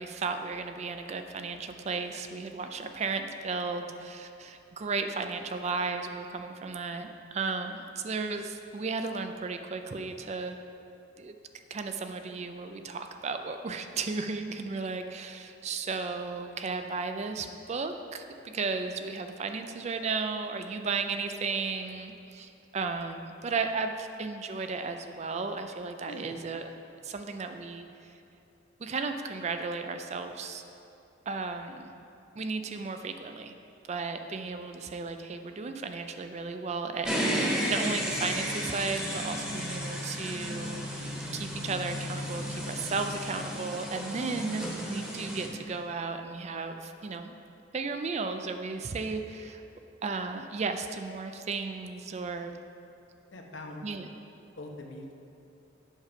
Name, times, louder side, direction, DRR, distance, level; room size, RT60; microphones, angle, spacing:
voice 1, 0.0-10.6 11.2-11.3 11.7-26.7 27.0-28.1 28.8-30.6 31.3-31.9 32.4-33.5 33.9-47.3 47.7-49.6 50.0-52.6 53.8-54.1, right 4 dB, 35° right, 7 dB, 0.4 m, -34 dB
sound 1, 37.0-45.5, equal, 5° right, 1.0 m, -33 dB
voice 2, 53.3-53.8 54.6-55.1, left 1 dB, 70° left, 2 dB, 0.9 m, -42 dB
7.3 x 5.7 x 5.0 m, 2.7 s
head